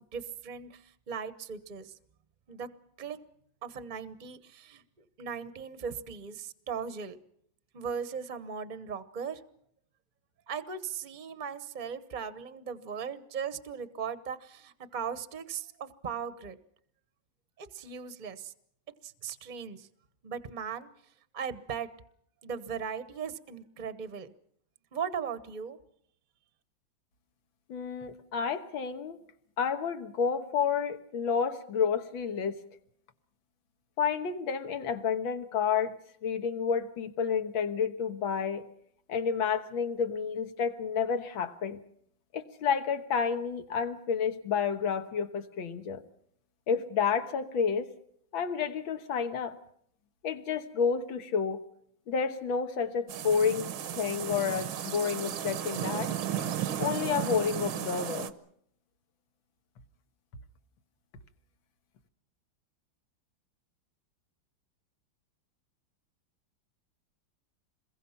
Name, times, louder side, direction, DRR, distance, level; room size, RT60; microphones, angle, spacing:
voice 1, 0.1-1.9 2.5-2.7 3.0-3.2 3.6-7.2 7.7-9.4 10.5-16.6 17.6-18.5 19.0-19.9 20.2-20.9 21.3-21.9 22.4-24.3 24.9-25.8, right 6 dB, 30° right, 0.9 m, -38 dB
voice 2, 27.7-29.2 29.6-32.6 34.0-36.0 36.2-38.6 39.1-41.8 42.3-46.0 46.7-47.9 48.3-49.6 50.2-51.6 52.1-53.7 54.0-56.1 56.8-58.3, left 6 dB, 75° left, 2.2 m, -30 dB
sound 1, 53.1-58.3, right 9 dB, 85° right, 1.9 m, -34 dB
27.0 x 22.0 x 5.8 m
omnidirectional pair, 2.2 m